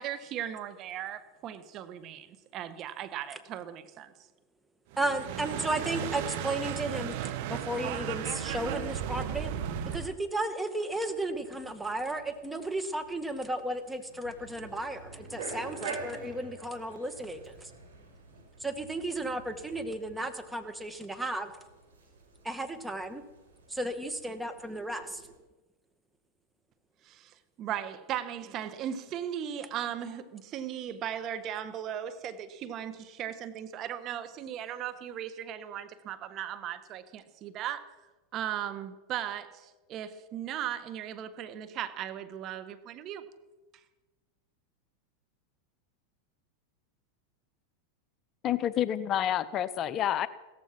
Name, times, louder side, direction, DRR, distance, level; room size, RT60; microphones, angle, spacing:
voice 1, 0.0-4.1 27.0-37.9 38.3-43.3, right 10 dB, 45° right, 1.4 m, -37 dB
sound 1, 4.9-10.1, right 9 dB, 60° right, 1.6 m, -35 dB
voice 2, 5.0-9.5 9.9-17.7 18.6-21.5 22.4-23.2 23.7-25.3, right 1 dB, 10° right, 1.9 m, -34 dB
sound 2, 10.9-25.4, right 3 dB, 90° right, 4.2 m, -48 dB
voice 3, 48.4-50.3, left 10 dB, 40° left, 0.7 m, -28 dB
16.5 x 14.5 x 6.0 m
hypercardioid pair, 105°, 0 cm